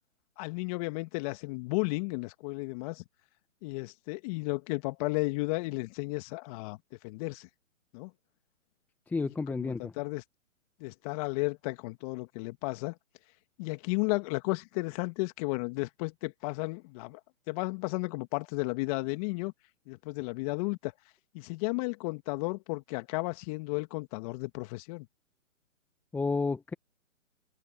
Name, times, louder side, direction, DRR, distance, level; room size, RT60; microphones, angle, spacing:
voice 1, 0.4-3.0 3.6-6.8 7.0-7.5 7.9-8.1 9.2-10.2 10.8-12.9 13.6-17.2 17.5-19.5 19.9-20.9 21.3-25.1, left 26 dB, 25° left, 2.3 m, -33 dB
voice 2, 9.1-9.9 26.1-26.7, left 4 dB, 5° left, 1.3 m, -31 dB
open air
hypercardioid pair, 140°, 40 cm